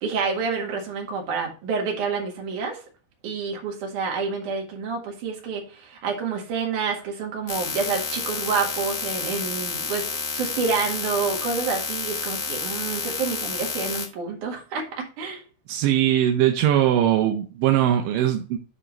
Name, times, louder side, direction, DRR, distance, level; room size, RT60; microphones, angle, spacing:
voice 1, 0.0-2.8 3.2-15.4, right 5 dB, 55° right, 1 dB, 3.0 m, -28 dB
sound 1, 7.5-14.1, left 6 dB, 60° left, 1.6 m, -30 dB
voice 2, 15.7-18.6, right 11 dB, 75° right, 4 dB, 2.0 m, -20 dB
10.0 x 3.8 x 4.4 m, 0.36 s
omnidirectional pair, 4.7 m